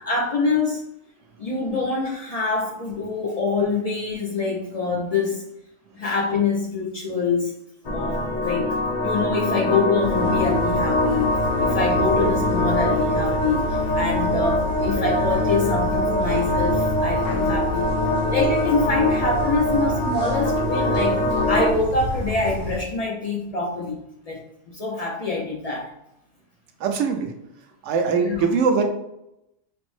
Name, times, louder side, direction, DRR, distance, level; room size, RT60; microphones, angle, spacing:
voice 1, 0.0-0.8 1.4-5.4 5.9-7.5 7.9-8.8 9.0-11.3 11.6-17.9 18.3-24.0 24.3-24.4 24.7-25.9 28.1-28.5, left 3 dB, 60° left, -1 dB, 0.4 m, -25 dB
sound 1, 7.8-21.7, left 1 dB, 45° left, 0.8 m, -23 dB
sound 2, 10.0-22.8, left 2 dB, 80° left, 1.5 m, -30 dB
voice 2, 26.8-27.3 27.8-28.9, right 5 dB, 70° right, 5 dB, 0.9 m, -21 dB
5.1 x 2.0 x 3.1 m, 0.84 s
omnidirectional pair, 1.3 m